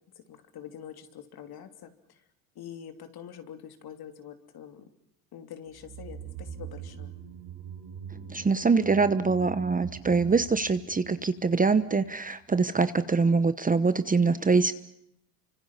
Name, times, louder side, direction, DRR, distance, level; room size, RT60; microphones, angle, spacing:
voice 1, 0.1-2.2 2.5-4.8 5.3-7.1, left 9 dB, 50° left, 7 dB, 3.1 m, -45 dB
sound 1, 5.7-12.1 12.4-12.5, right 8 dB, 70° right, 5.0 m, -43 dB
voice 2, 8.1-14.7, right 4 dB, 15° right, 12 dB, 1.0 m, -24 dB
29.5 x 25.5 x 5.7 m, 0.74 s
supercardioid pair, 100°, 47 cm